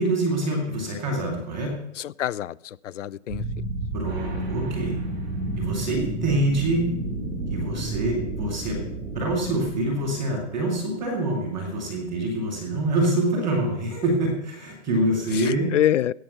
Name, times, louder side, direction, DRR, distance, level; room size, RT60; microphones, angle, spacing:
voice 1, 0.0-1.7 3.9-4.9 5.6-6.9 7.5-8.8 9.1-15.7, right 1 dB, ahead, -13 dB, 0.5 m, -25 dB
voice 2, 2.0-3.6 15.3-16.1, left 11 dB, 80° left, 22 dB, 0.5 m, -26 dB
sound 1, 3.3-11.0, right 2 dB, 20° right, 2.8 m, -31 dB
17.0 x 6.6 x 5.8 m, 0.77 s
hypercardioid pair, 175°, 37 cm